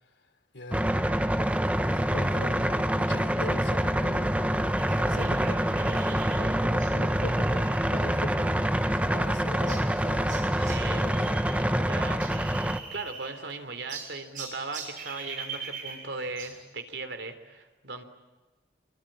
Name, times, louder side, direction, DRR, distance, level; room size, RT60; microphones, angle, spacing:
voice 1, 0.5-1.3 1.9-4.7 5.0-8.5 9.1-11.3, left 1 dB, 85° left, 7 dB, 3.5 m, -41 dB
sound 1, 0.7-12.8, equal, 10° right, 1.2 m, -26 dB
sound 2, 4.8-11.6 11.9-13.5 13.9-16.6, right 5 dB, 45° right, 7.4 m, -43 dB
voice 2, 10.6-18.0, right 3 dB, 80° right, 8 dB, 3.5 m, -39 dB
27.5 x 24.0 x 8.9 m, 1.2 s
head